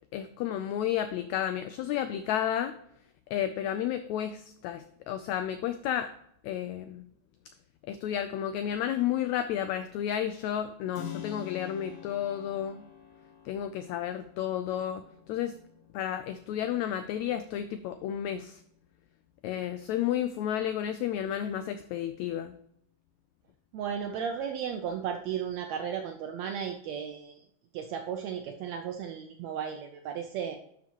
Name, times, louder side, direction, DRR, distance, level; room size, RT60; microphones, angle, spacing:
voice 1, 0.1-2.7 3.3-6.1 6.4-7.1 7.9-12.8 13.5-15.5 15.9-18.6 19.4-22.5, left 10 dB, 90° left, 10 dB, 1.6 m, -32 dB
Keyboard (musical), 10.9-19.5, left 10 dB, 60° left, 1.9 m, -47 dB
voice 2, 23.7-27.4 27.7-30.6, right 8 dB, 80° right, 5 dB, 1.6 m, -35 dB
11.0 x 5.9 x 2.9 m, 0.70 s
omnidirectional pair, 3.8 m